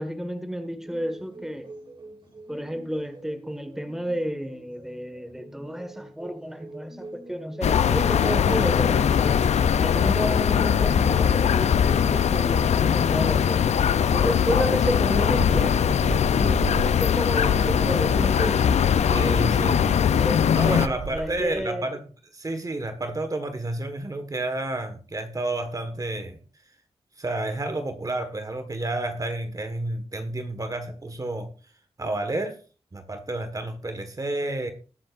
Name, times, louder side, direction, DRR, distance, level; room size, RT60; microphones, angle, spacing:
voice 1, 0.0-1.7 2.5-9.5 9.8-13.8 14.1-15.8 16.3-19.0 19.3-19.5 20.1-21.9, equal, 5° right, 1.5 m, -31 dB
sound 1, 0.8-9.1 10.4-10.5, right 2 dB, 50° right, 3.6 m, -45 dB
sound 2, 7.6-20.9, left 8 dB, 85° left, 0.5 m, -21 dB
sound 3, 15.3-21.6, right 4 dB, 85° right, 1.0 m, -35 dB
voice 2, 19.1-20.1 20.5-22.0 22.3-26.4 27.2-31.5 32.0-32.6 32.9-34.7, right 2 dB, 30° right, 1.5 m, -30 dB
20.0 x 7.6 x 2.5 m
wide cardioid pair, 85°, 11 cm